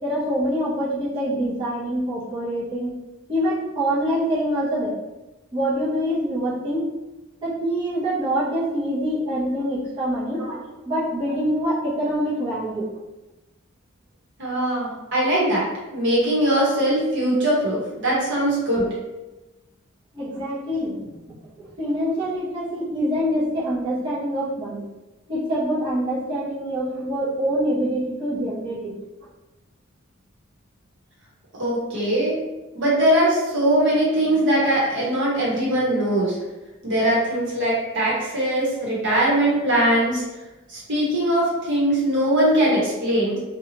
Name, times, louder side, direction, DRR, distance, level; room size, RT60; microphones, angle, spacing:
voice 1, 0.0-2.9 3.3-4.9 5.5-6.9 7.4-10.4 10.8-12.9 20.1-24.9 25.3-29.0, equal, 25° right, -11 dB, 0.7 m, -25 dB
voice 2, 14.4-15.6 15.9-18.9 31.6-32.4 32.7-36.4 36.8-40.2 40.7-43.4, right 1 dB, 60° right, -6 dB, 1.1 m, -21 dB
2.8 x 2.3 x 2.8 m, 1.1 s
head